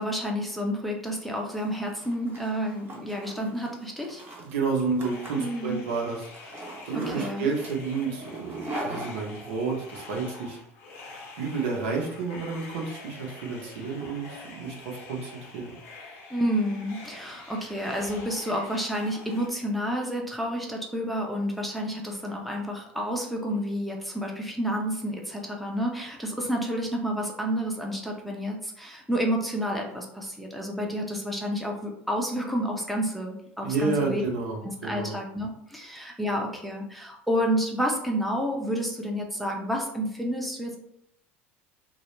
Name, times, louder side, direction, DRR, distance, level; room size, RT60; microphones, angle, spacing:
voice 1, 0.0-4.2 5.4-5.8 7.0-7.5 16.3-34.2 34.8-40.8, equal, ahead, 0 dB, 0.5 m, -30 dB
Zipper (clothing), 1.2-9.9, right 1 dB, 30° right, 0.8 m, -41 dB
voice 2, 4.4-6.3 6.8-10.6 11.4-15.7 33.6-35.2, right 4 dB, 70° right, 0 dB, 0.7 m, -30 dB
sound 1, 5.0-19.5, left 3 dB, 65° left, 0.7 m, -46 dB
2.3 x 2.0 x 3.0 m, 0.73 s
hypercardioid pair, 75°, 7 cm